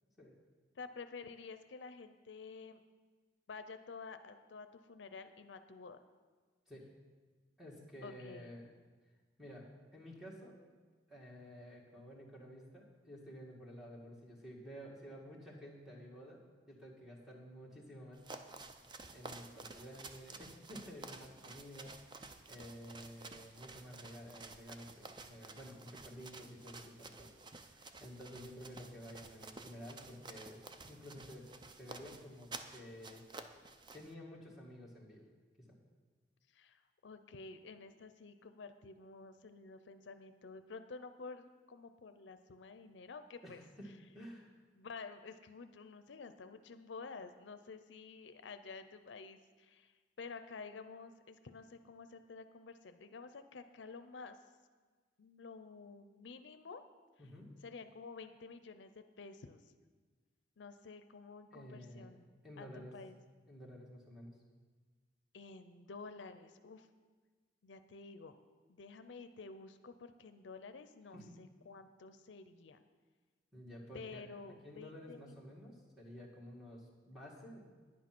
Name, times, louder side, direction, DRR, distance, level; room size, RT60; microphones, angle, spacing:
voice 1, 0.8-2.8 3.5-6.0 8.0-8.5 36.5-43.6 44.8-49.9 50.2-54.4 55.2-56.8 57.6-59.6 60.6-62.3 62.6-63.2 65.3-66.9 67.6-68.4 68.7-72.8 73.9-75.4, left 4 dB, 80° left, 10 dB, 0.5 m, -51 dB
voice 2, 6.7-7.0 7.6-8.7 9.4-10.5 11.1-18.6 19.1-27.3 27.6-31.5 31.8-33.2 33.9-35.2 35.6-35.8 43.4-44.5 57.2-57.6 61.5-62.1 62.4-62.9 63.5-64.4 71.1-71.3 73.5-74.2 74.5-77.7, equal, ahead, -3 dB, 1.9 m, -52 dB
sound 1, 18.1-34.1, right 3 dB, 25° right, 0.5 m, -52 dB
9.9 x 8.5 x 6.0 m, 1.4 s
head